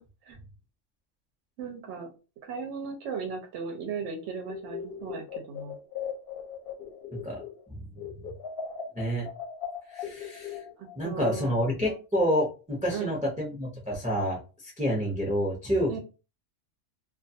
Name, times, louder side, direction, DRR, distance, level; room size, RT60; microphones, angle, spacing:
voice 1, 1.6-2.1 2.4-5.8 10.8-11.5 12.9-13.1 15.9-16.0, right 5 dB, 75° right, 2 dB, 0.9 m, -36 dB
sound 1, 4.4-7.7 8.0-11.0, left 7 dB, 60° left, 0.7 m, -38 dB
voice 2, 8.9-9.3 9.9-10.6 11.0-16.0, equal, 10° right, -3 dB, 0.5 m, -28 dB
2.3 x 2.3 x 2.6 m, 0.32 s
omnidirectional pair, 1.3 m